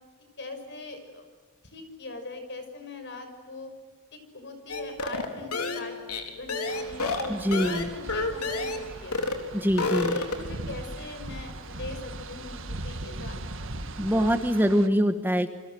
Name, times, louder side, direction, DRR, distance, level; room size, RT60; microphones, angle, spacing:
voice 1, 0.4-1.2 1.6-3.7 4.1-6.0 6.2-9.2 9.8-13.6, left 3 dB, 55° left, 7 dB, 6.2 m, -41 dB
sound 1, 4.7-8.9 9.1-9.4 9.7-10.5, left 3 dB, 85° left, 3.9 m, -29 dB
sound 2, 6.7-14.9, right 2 dB, 60° right, 2.0 m, -39 dB
voice 2, 7.3-7.9 9.5-10.1 14.0-15.5, equal, 10° right, 8 dB, 1.2 m, -24 dB
29.0 x 25.0 x 7.8 m, 1.4 s
head